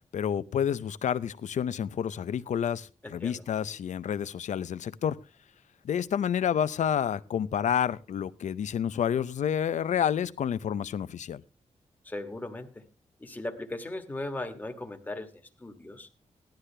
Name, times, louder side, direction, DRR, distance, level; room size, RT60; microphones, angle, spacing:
voice 1, 0.1-5.2 5.8-11.4, left 8 dB, 75° left, 16 dB, 0.6 m, -29 dB
voice 2, 3.0-3.4 12.0-12.8 13.2-15.3 15.6-16.1, left 2 dB, 15° left, 5 dB, 1.5 m, -38 dB
16.5 x 11.5 x 3.3 m, 0.30 s
wide cardioid pair, 160°, 12 cm